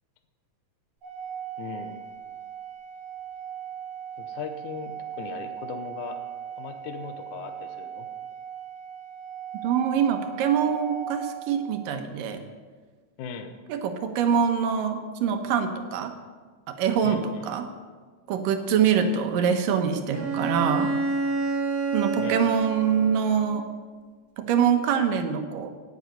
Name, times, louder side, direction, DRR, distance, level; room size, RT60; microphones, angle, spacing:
Organ, 1.0-11.9, right 9 dB, 65° right, 3.4 m, -38 dB
voice 1, 1.6-2.1 4.2-6.3 6.6-8.1 13.2-13.6 17.0-17.5 22.2-22.4, left 6 dB, 75° left, 7 dB, 2.2 m, -38 dB
voice 2, 9.5-12.4 13.7-16.1 16.7-17.7 18.3-20.9 21.9-23.7 24.4-25.7, right 7 dB, 85° right, 6 dB, 2.7 m, -24 dB
Bowed string instrument, 20.1-23.6, right 3 dB, 35° right, 2.7 m, -28 dB
17.5 x 8.2 x 5.2 m, 1.5 s
omnidirectional pair, 3.8 m